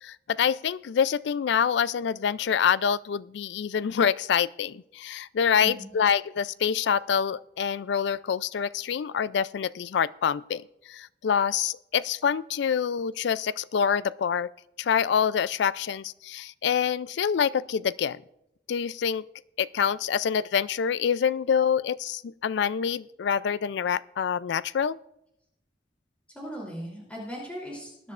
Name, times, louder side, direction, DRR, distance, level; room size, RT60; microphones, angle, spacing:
voice 1, 0.0-14.5 14.8-18.2 18.7-19.2 19.6-25.0, left 7 dB, 65° left, 19 dB, 0.3 m, -26 dB
voice 2, 5.6-5.9 26.3-28.1, equal, 5° left, -4 dB, 3.0 m, -38 dB
19.5 x 10.5 x 2.4 m, 0.80 s
head